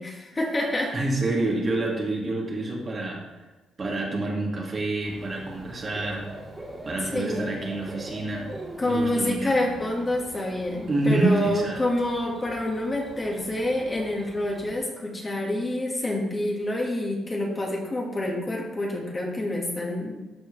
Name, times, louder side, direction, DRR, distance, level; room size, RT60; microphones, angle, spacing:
voice 1, 0.0-0.9 7.0-7.5 8.8-20.2, left 1 dB, 25° left, 0 dB, 1.6 m, -27 dB
voice 2, 0.9-3.2 3.8-6.3 6.8-8.5 8.9-9.5 10.9-11.8, right 2 dB, 40° right, -2 dB, 2.0 m, -27 dB
Bird / Cricket, 5.0-14.8, right 1 dB, 20° right, 2.1 m, -43 dB
12.5 x 4.6 x 3.2 m, 1.1 s
cardioid pair, 90°, 0 cm